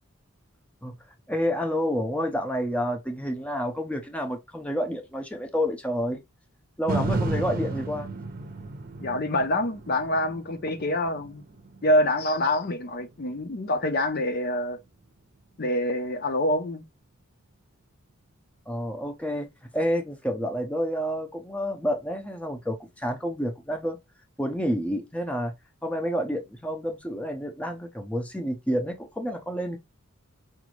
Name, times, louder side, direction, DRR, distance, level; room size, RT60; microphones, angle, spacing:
voice 1, 1.3-6.2 6.8-8.1 18.7-19.5 19.7-24.0 24.4-25.5 25.8-29.8, equal, 5° left, 0.6 m, -29 dB
sound 1, 6.9-15.0 15.5-15.6, right 3 dB, 45° right, 0.7 m, -34 dB
voice 2, 9.0-11.4 11.8-14.8 15.6-16.8, left 1 dB, 45° left, 0.6 m, -26 dB
5.0 x 2.6 x 3.0 m
head